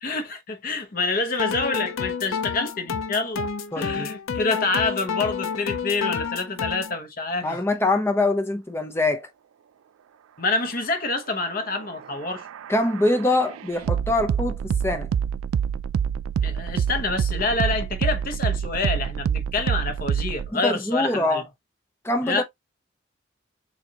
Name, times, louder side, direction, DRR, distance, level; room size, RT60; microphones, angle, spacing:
voice 1, 0.0-3.5 3.8-7.6 10.4-12.5 16.4-21.4 22.2-22.4, left 3 dB, 45° left, 1.0 m, -27 dB
sound 1, 1.3-7.0, left 6 dB, 85° left, 0.6 m, -30 dB
voice 2, 3.7-4.1 7.4-9.3 12.7-15.1 20.5-21.4 22.0-22.4, left 2 dB, 10° left, 0.8 m, -24 dB
sound 2, 11.8-20.5, right 7 dB, 90° right, 0.3 m, -27 dB
7.2 x 2.5 x 2.9 m
head